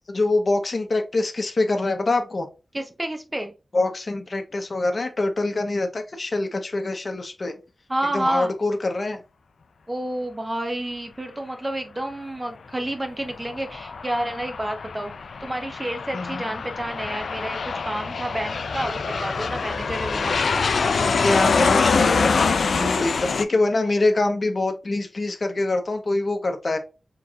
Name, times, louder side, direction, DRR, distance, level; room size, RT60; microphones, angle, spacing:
voice 1, 0.1-2.5 3.7-7.5 8.1-9.2 16.1-16.4 21.2-22.4 22.8-26.8, left 2 dB, 50° left, 0.8 m, -24 dB
voice 2, 2.7-3.5 7.9-8.5 9.9-15.1 15.4-20.6, right 1 dB, 20° right, 0.8 m, -29 dB
Aircraft, 13.2-23.4, left 4 dB, 80° left, 0.4 m, -24 dB
4.6 x 3.7 x 2.3 m
wide cardioid pair, 80°, 0 cm